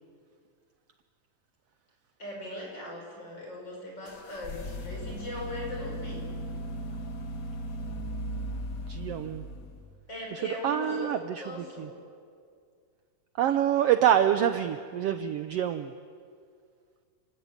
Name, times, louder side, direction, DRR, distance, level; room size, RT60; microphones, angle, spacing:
voice 1, 2.2-6.3 10.1-11.1 11.4-12.0, left 1 dB, 30° left, -1 dB, 7.6 m, -39 dB
sound 1, 4.1-10.0, equal, 60° left, 0.9 m, -37 dB
voice 2, 8.9-9.4 10.3-11.9 13.4-15.9, right 10 dB, 80° right, 9 dB, 1.4 m, -26 dB
29.5 x 17.5 x 9.8 m, 2.2 s
omnidirectional pair, 3.7 m